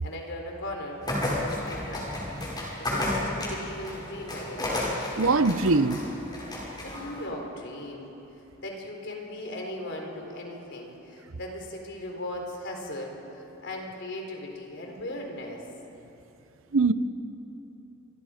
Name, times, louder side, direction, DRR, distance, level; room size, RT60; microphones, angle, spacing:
voice 1, 0.0-2.2 2.8-4.8 6.8-8.1 8.3-13.2 13.6-15.7, left 1 dB, 60° left, 1 dB, 4.1 m, -38 dB
sound 1, 1.0-7.2, left 1 dB, 20° left, 5.3 m, -32 dB
voice 2, 5.2-6.0 16.7-16.9, right 3 dB, 70° right, 12 dB, 0.8 m, -21 dB
28.5 x 25.0 x 5.1 m, 3.0 s
head